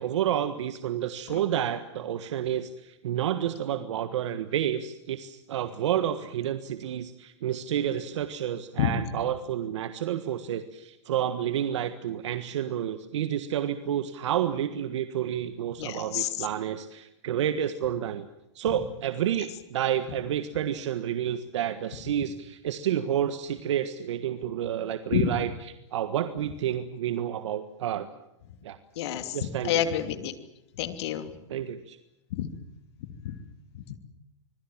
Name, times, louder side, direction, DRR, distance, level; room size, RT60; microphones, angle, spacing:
voice 1, 0.0-18.2 18.5-28.1 28.6-28.8 29.3-29.8 31.5-32.0, right 10 dB, 75° right, 10 dB, 1.6 m, -30 dB
voice 2, 15.8-16.3 25.1-25.3 29.0-29.4 29.6-30.3 30.8-31.3 32.3-32.5 33.2-33.4 33.7-34.0, left 11 dB, 60° left, 9 dB, 3.0 m, -28 dB
25.5 x 23.0 x 7.4 m, 0.88 s
hypercardioid pair, 130°, 15 cm